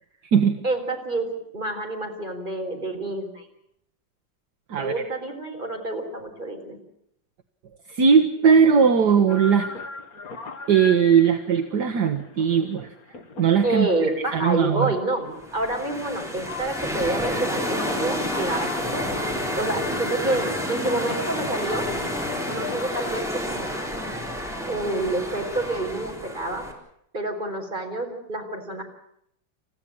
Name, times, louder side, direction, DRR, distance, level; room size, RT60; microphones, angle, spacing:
voice 1, 0.6-3.5 4.8-6.8 13.6-19.0 19.5-21.9 22.5-23.7 24.7-26.7 27.1-28.8, right 2 dB, 25° right, 2 dB, 4.5 m, -28 dB
voice 2, 7.9-9.7 10.7-12.9 13.4-13.9 14.3-14.9, right 6 dB, 65° right, 6 dB, 1.7 m, -19 dB
sound 1, 9.3-23.2, left 4 dB, 50° left, 2.1 m, -37 dB
sound 2, 15.4-26.7, equal, ahead, 3.9 m, -30 dB
29.5 x 15.0 x 8.7 m, 0.74 s
omnidirectional pair, 2.0 m